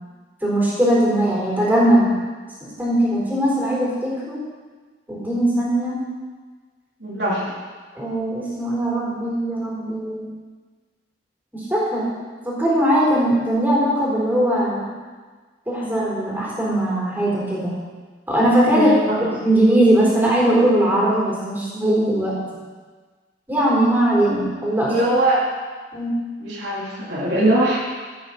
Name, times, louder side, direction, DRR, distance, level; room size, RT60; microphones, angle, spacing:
voice 1, 0.4-2.1 2.6-4.4 5.1-6.0 7.9-10.2 11.5-12.1 12.4-14.9 15.7-17.7 18.3-19.0 19.4-22.4 23.5-24.9 25.9-26.1, right 1 dB, 10° right, -6 dB, 4.4 m, -20 dB
voice 2, 7.0-7.5 18.7-19.3 24.9-25.5 26.4-27.8, right 1 dB, 70° right, -5 dB, 3.7 m, -21 dB
15.0 x 9.2 x 4.3 m, 1.4 s
head